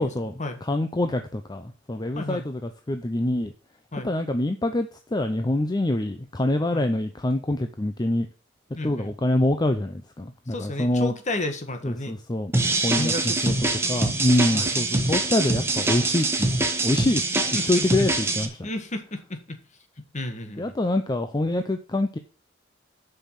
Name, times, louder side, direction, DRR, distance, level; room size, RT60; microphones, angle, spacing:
voice 1, 0.0-3.5 4.0-8.3 8.8-11.1 11.8-12.5 12.8-13.5 13.9-17.2 17.5-18.7 20.6-22.2, left 1 dB, 20° left, 7 dB, 0.6 m, -25 dB
voice 2, 2.1-2.4 3.9-4.1 6.7-6.9 8.8-9.1 10.5-12.2 12.9-13.7 14.5-14.7 17.5-17.8 18.6-19.6 20.1-20.7, left 2 dB, 40° left, 7 dB, 1.5 m, -32 dB
sound 1, 12.5-18.5, right 2 dB, 15° right, 1.3 m, -24 dB
7.2 x 5.7 x 7.2 m, 0.38 s
head